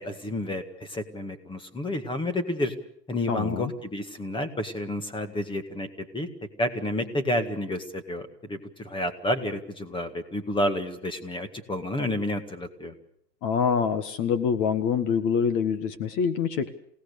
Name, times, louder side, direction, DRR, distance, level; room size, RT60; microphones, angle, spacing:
voice 1, 0.0-2.7 3.1-6.3 6.6-12.9, left 1 dB, 10° left, 9 dB, 1.9 m, -30 dB
voice 2, 3.3-3.7 13.4-16.7, left 7 dB, 35° left, 11 dB, 1.7 m, -25 dB
28.5 x 17.5 x 6.9 m, 0.69 s
hypercardioid pair, 135°, 50 cm